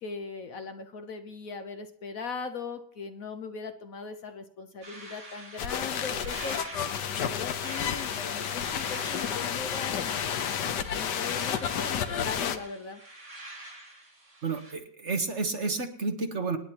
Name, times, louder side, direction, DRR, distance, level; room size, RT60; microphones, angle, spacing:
voice 1, 0.0-6.6 7.1-13.0, left 5 dB, 60° left, 7 dB, 1.2 m, -40 dB
sound 1, 4.8-14.7, right 2 dB, 85° right, 4.8 m, -46 dB
sound 2, 5.6-12.6, left 8 dB, 75° left, 1.5 m, -31 dB
voice 2, 14.4-16.6, right 3 dB, 45° right, 6 dB, 1.3 m, -30 dB
26.5 x 10.0 x 2.9 m, 0.66 s
omnidirectional pair, 1.9 m